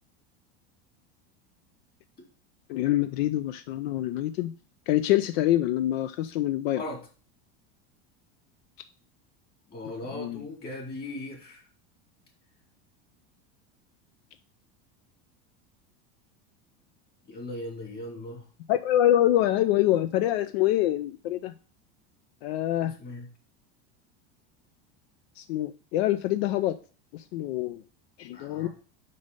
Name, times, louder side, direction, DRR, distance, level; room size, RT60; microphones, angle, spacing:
voice 1, 2.7-4.5 4.9-6.8 10.1-10.4 18.7-21.5 22.4-22.9 25.4-26.8 27.1-27.8 28.2-28.7, left 13 dB, 80° left, 0.5 m, -25 dB
voice 2, 6.7-7.1 9.7-11.7 17.3-18.4 22.8-23.3 28.3-28.7, left 1 dB, 30° left, 2.7 m, -38 dB
5.4 x 5.4 x 5.3 m
supercardioid pair, 145°, 31 cm